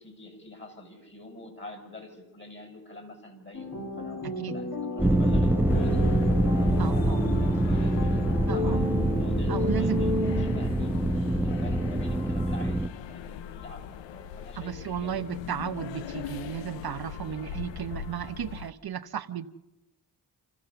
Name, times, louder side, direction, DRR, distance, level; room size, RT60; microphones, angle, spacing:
voice 1, 0.0-11.1 11.4-15.1 17.7-18.0, left 2 dB, 25° left, 5 dB, 6.3 m, -47 dB
sound 1, 3.5-10.8, left 1 dB, 45° left, 4.0 m, -33 dB
voice 2, 4.2-4.6 6.8-7.2 8.5-8.8 9.5-10.0 14.6-19.5, right 9 dB, 60° right, 8 dB, 0.9 m, -34 dB
sound 2, 5.0-12.9, right 1 dB, 5° right, 0.8 m, -25 dB
sound 3, 5.7-18.7, left 9 dB, 90° left, 0.7 m, -40 dB
27.5 x 14.0 x 6.9 m, 0.98 s
cardioid pair, 65°, 43 cm